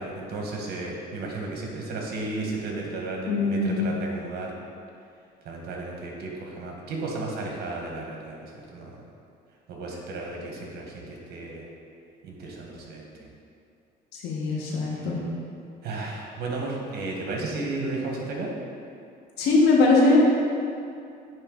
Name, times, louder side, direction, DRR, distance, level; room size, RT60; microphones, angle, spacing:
voice 1, 0.0-4.5 5.4-8.9 9.7-11.7 12.2-13.3 15.8-18.5, right 2 dB, 70° right, -1 dB, 1.3 m, -34 dB
voice 2, 3.3-3.8 14.1-15.2 19.4-20.2, left 3 dB, 85° left, -3 dB, 1.2 m, -21 dB
9.2 x 3.2 x 3.8 m, 2.5 s
cardioid pair, 110°, 17 cm